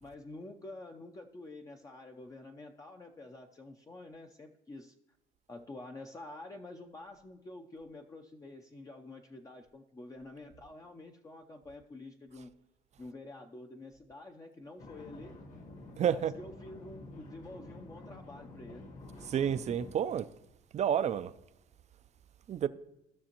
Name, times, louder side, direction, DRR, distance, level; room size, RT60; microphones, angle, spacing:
voice 1, 0.0-4.9 5.5-12.5 13.0-15.3 16.1-18.9, left 2 dB, 20° left, 0.6 m, -48 dB
Water mill - top floor room sound, 14.8-19.9, left 2 dB, 50° left, 1.5 m, -49 dB
voice 2, 16.0-16.3 19.3-20.3 20.7-21.3 22.5-22.7, right 9 dB, 40° right, 0.5 m, -30 dB
15.0 x 6.2 x 2.9 m
cardioid pair, 110°, 17 cm